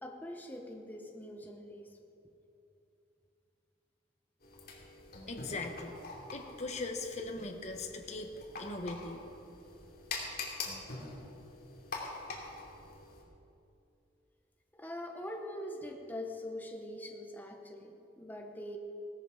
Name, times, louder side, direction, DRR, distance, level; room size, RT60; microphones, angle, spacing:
voice 1, 0.0-2.0 14.7-18.8, left 1 dB, 10° left, 2 dB, 0.9 m, -43 dB
sound 1, 4.4-13.2, left 3 dB, 55° left, 2.6 m, -45 dB
voice 2, 5.3-5.9 6.3-8.3 8.6-9.3, left 2 dB, 40° left, 4 dB, 1.3 m, -39 dB
17.5 x 13.0 x 5.0 m, 2.8 s
head